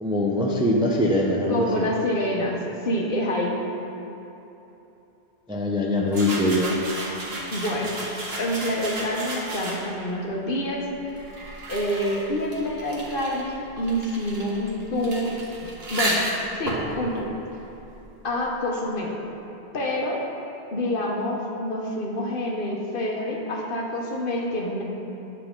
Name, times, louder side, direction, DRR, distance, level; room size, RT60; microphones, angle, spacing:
voice 1, 0.0-1.9 5.5-6.8, left 1 dB, 5° right, -2 dB, 0.4 m, -22 dB
voice 2, 1.5-3.5 7.5-7.9 8.4-10.8 11.7-15.3 15.9-16.2 16.6-17.3 18.2-19.1 19.7-20.2 20.7-24.8, left 1 dB, 55° left, -1 dB, 1.1 m, -27 dB
sound 1, 6.1-10.1 10.9-18.3, right 1 dB, 65° right, 1.4 m, -33 dB
9.3 x 6.6 x 3.7 m, 3.0 s
omnidirectional pair, 1.1 m